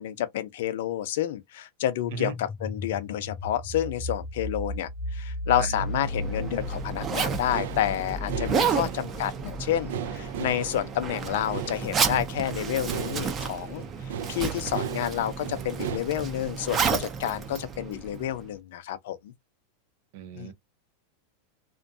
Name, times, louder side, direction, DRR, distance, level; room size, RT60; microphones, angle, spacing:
voice 1, 0.0-13.9 14.3-19.3 20.3-20.5, left 11 dB, 70° left, 0.5 m, -29 dB
sound 1, 2.0-10.7, left 2 dB, 20° left, 0.4 m, -36 dB
Zipper (clothing), 5.8-18.5, right 6 dB, 25° right, 0.6 m, -31 dB
sound 2, 6.0-16.0, right 9 dB, 80° right, 0.3 m, -38 dB
voice 2, 8.6-9.0 20.1-20.5, right 10 dB, 60° right, 0.7 m, -38 dB
2.5 x 2.2 x 2.5 m
supercardioid pair, 140°, 0 cm